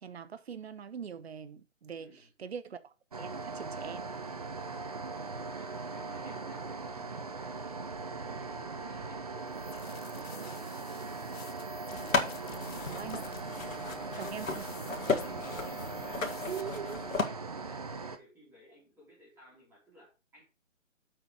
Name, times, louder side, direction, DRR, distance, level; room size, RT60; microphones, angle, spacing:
voice 1, 0.0-2.1 2.4-4.1 12.9-13.2 14.2-14.6 16.5-17.0, right 7 dB, 50° right, 0.9 m, -42 dB
voice 2, 2.0-2.5 4.9-7.8 8.2-11.4 13.9-14.5 15.2-15.8 16.1-20.4, equal, 5° right, 2.4 m, -57 dB
sound 1, 3.1-18.2, right 4 dB, 30° right, 0.6 m, -40 dB
sound 2, 9.5-16.6, left 6 dB, 50° left, 1.2 m, -52 dB
sound 3, 11.9-17.2, left 4 dB, 85° left, 2.3 m, -35 dB
7.3 x 5.0 x 6.4 m
hypercardioid pair, 170°, 40 cm